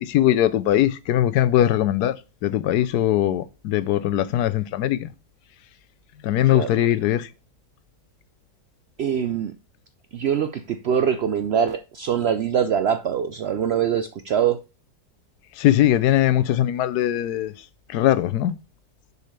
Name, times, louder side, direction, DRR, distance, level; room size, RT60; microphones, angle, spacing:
voice 1, 0.0-2.2 2.4-5.1 6.2-7.3 15.6-17.5 17.9-18.6, left 12 dB, 90° left, 1.2 m, -20 dB
voice 2, 9.0-9.5 10.1-14.6, right 8 dB, 70° right, 0.6 m, -23 dB
6.8 x 5.0 x 6.5 m
omnidirectional pair, 1.6 m